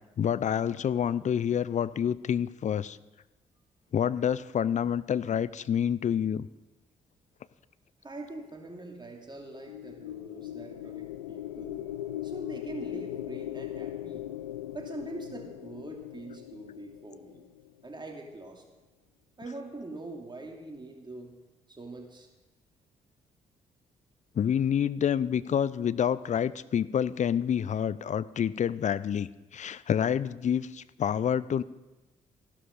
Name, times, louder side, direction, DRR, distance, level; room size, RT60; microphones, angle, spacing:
voice 1, 0.2-3.0 3.9-6.5 24.4-31.6, left 8 dB, 45° left, 17 dB, 0.6 m, -28 dB
voice 2, 8.0-11.9 12.2-14.2 14.7-17.4 17.8-18.6 19.4-21.4 21.7-22.3, right 2 dB, 25° right, 1 dB, 2.9 m, -43 dB
sound 1, 9.4-17.9, left 13 dB, 85° left, 0.4 m, -39 dB
15.0 x 12.0 x 5.4 m, 1.1 s
hypercardioid pair, 40°, 17 cm